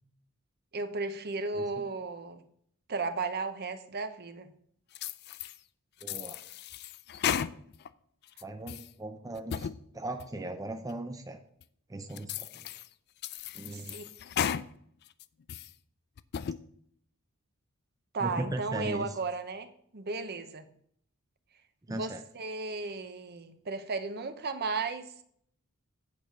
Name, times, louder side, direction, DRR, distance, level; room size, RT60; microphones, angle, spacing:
voice 1, 0.7-2.4 2.9-4.5 13.7-14.0 14.3-14.4 18.1-20.7 21.9-25.1, right 3 dB, 45° right, 10 dB, 0.7 m, -35 dB
sound 1, 5.0-5.6 6.0-7.9 8.3-8.9 9.4-9.8 10.2-10.3 10.9-11.0 11.6-11.7 12.2-12.9 13.2-14.7 15.1-15.7 16.2-16.6, left 8 dB, 50° left, 0.4 m, -35 dB
voice 2, 6.0-6.4 8.4-9.7 9.9-11.4 11.9-12.7 13.5-14.0 18.2-19.1 21.9-22.2, right 2 dB, 15° right, 5 dB, 0.5 m, -38 dB
8.6 x 4.7 x 6.7 m, 0.65 s
head